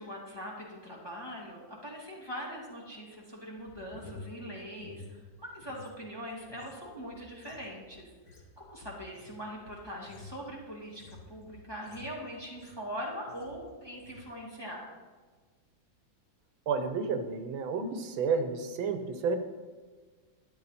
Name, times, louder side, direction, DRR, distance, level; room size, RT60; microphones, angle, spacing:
voice 1, 0.0-8.1 8.6-14.9, equal, 10° left, -4 dB, 2.2 m, -42 dB
sound 1, 3.6-5.9 6.2-12.9 13.3-13.6 13.9-14.3, left 3 dB, 55° left, 2.0 m, -51 dB
voice 2, 16.7-19.4, right 5 dB, 85° right, 7 dB, 1.8 m, -31 dB
12.0 x 10.5 x 4.2 m, 1.4 s
omnidirectional pair, 2.1 m